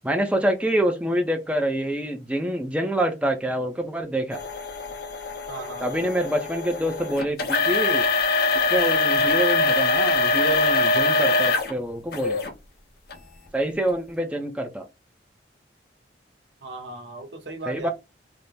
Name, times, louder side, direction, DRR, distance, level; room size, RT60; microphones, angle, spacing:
voice 1, 0.0-4.4 5.8-8.0 8.7-12.4 13.5-14.8 17.7-17.9, right 1 dB, 5° right, 0.5 m, -26 dB
sound 1, 4.3-11.7 12.1-12.5 13.1-13.2 13.9-14.0, left 3 dB, 55° left, 0.6 m, -23 dB
voice 2, 5.5-6.1 16.6-17.9, right 3 dB, 75° right, 0.9 m, -37 dB
3.4 x 2.0 x 4.0 m
head